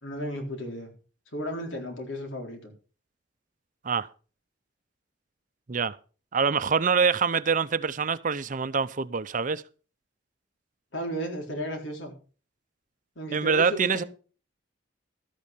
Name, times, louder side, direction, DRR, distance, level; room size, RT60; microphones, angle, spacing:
voice 1, 0.0-0.9 1.3-2.7 10.9-12.1 13.2-14.1, equal, 90° left, 4.0 m, -34 dB
voice 2, 6.3-9.6 13.3-14.0, right 5 dB, 45° right, 0.6 m, -25 dB
13.0 x 8.4 x 5.2 m
head